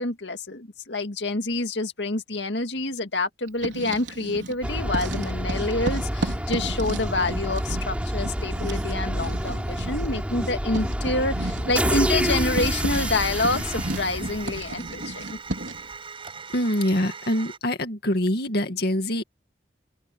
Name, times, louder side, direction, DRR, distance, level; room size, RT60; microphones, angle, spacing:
voice 1, 0.0-15.4, left 2 dB, 80° left, 2.0 m, -27 dB
Writing, 3.5-4.6 4.9-15.9, right 1 dB, 80° right, 4.4 m, -34 dB
sound 1, 4.6-14.9, equal, 5° right, 4.5 m, -28 dB
sound 2, 12.3-17.6, right 5 dB, 30° right, 7.8 m, -40 dB
voice 2, 16.5-19.2, left 1 dB, 60° left, 2.2 m, -24 dB
open air
head